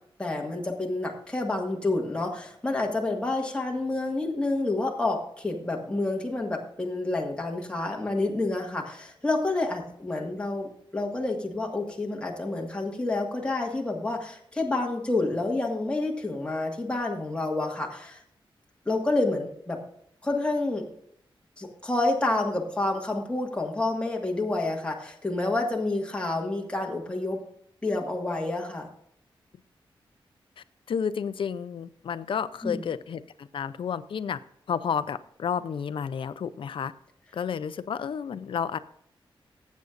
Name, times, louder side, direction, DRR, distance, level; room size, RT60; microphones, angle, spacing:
voice 1, 0.2-18.2 18.8-19.8 20.2-20.9 21.6-27.4 27.8-28.9 32.6-32.8, left 2 dB, 10° left, 0 dB, 1.7 m, -29 dB
voice 2, 30.6-34.4 34.7-36.9 37.3-38.8, left 7 dB, 70° left, 14 dB, 0.5 m, -31 dB
18.5 x 8.3 x 2.6 m, 0.71 s
wide cardioid pair, 140°, 9 cm